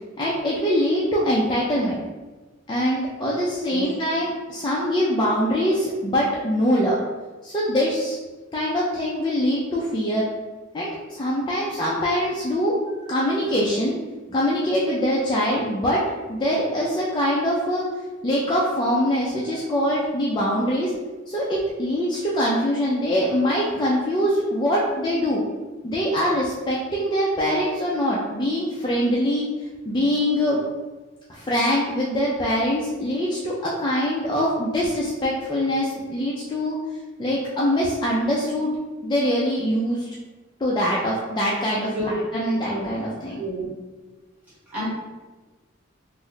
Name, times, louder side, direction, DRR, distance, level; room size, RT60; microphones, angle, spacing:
voice 1, 0.2-2.0 2.7-7.0 7.4-8.2 8.5-10.3 10.7-12.8 13.1-13.9 14.3-16.0 16.3-17.9 18.2-20.9 21.3-25.4 25.8-29.5 29.8-30.6 31.3-36.8 37.2-38.7 39.0-40.1 40.6-43.4, equal, 20° left, -5 dB, 0.3 m, -23 dB
voice 2, 43.4-43.7 44.7-44.9, right 1 dB, 5° right, -9 dB, 1.2 m, -29 dB
3.0 x 2.0 x 3.8 m, 1.2 s
head